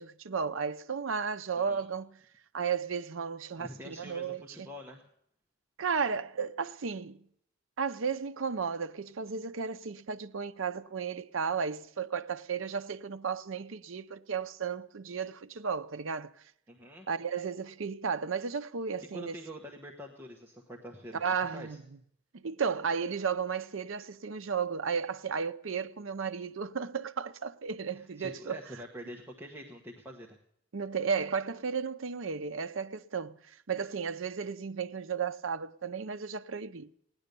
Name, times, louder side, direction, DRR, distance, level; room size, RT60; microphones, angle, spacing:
voice 1, 0.0-2.1 2.5-4.4 5.8-7.2 7.8-16.3 17.1-19.4 21.1-21.8 22.3-28.6 30.7-33.4 33.7-36.9, right 6 dB, 75° right, 0.6 m, -34 dB
voice 2, 1.5-1.9 3.6-5.1 16.7-17.1 19.1-21.8 27.9-30.4, equal, 10° right, 1.1 m, -46 dB
17.0 x 10.5 x 6.8 m
head